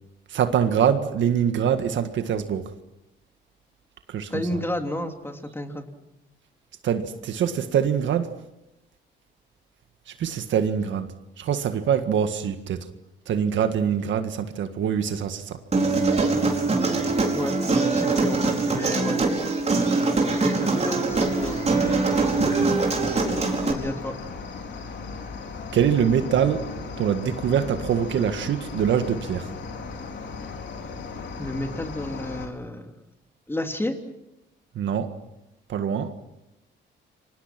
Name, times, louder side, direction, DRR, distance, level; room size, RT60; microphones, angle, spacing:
voice 1, 0.3-2.7 4.1-4.6 6.8-8.3 10.2-12.9 13.3-15.6 22.4-22.7 25.7-26.7 27.0-29.5 34.8-35.1 35.7-36.1, right 8 dB, 70° right, 8 dB, 1.8 m, -24 dB
voice 2, 4.3-5.9 17.3-19.2 20.3-21.7 23.7-24.1 31.4-32.9 33.5-33.9, left 1 dB, 10° left, 4 dB, 3.2 m, -31 dB
Human voice, 15.7-23.7, right 3 dB, 35° right, 4.9 m, -23 dB
Cricket, 21.1-32.5, left 4 dB, 65° left, 4.3 m, -36 dB
28.0 x 24.0 x 6.1 m, 0.89 s
cardioid pair, 90°, 20 cm